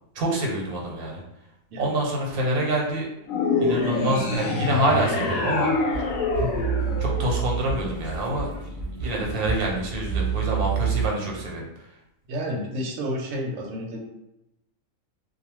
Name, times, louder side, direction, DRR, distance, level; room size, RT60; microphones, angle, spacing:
voice 1, 0.1-1.2 1.8-3.1 3.6-5.7 7.0-8.5 9.0-11.7, right 1 dB, 90° right, -1 dB, 1.2 m, -26 dB
sound 1, 3.3-7.8, left 3 dB, 75° left, 0.9 m, -26 dB
sound 2, 5.9-11.1, right 7 dB, 50° right, 0.4 m, -28 dB
voice 2, 12.3-14.0, equal, 70° right, 0 dB, 0.9 m, -30 dB
2.3 x 2.3 x 3.0 m, 0.88 s
omnidirectional pair, 1.5 m